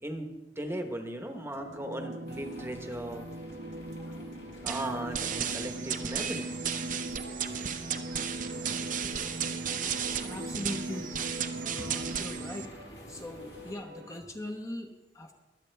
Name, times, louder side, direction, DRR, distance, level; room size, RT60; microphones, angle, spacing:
voice 1, 0.0-3.2 4.6-6.5, right 1 dB, 15° right, 5 dB, 1.1 m, -37 dB
sound 1, 1.5-14.2, right 1 dB, 65° right, 1.1 m, -43 dB
sound 2, 2.3-13.7, left 1 dB, 65° left, 2.7 m, -50 dB
sound 3, 4.7-12.7, right 7 dB, 50° right, 0.7 m, -34 dB
voice 2, 9.3-9.9 10.2-11.2 11.6-12.7 13.1-15.3, left 1 dB, 20° left, 2 dB, 0.9 m, -41 dB
23.0 x 8.2 x 3.4 m, 1.0 s
head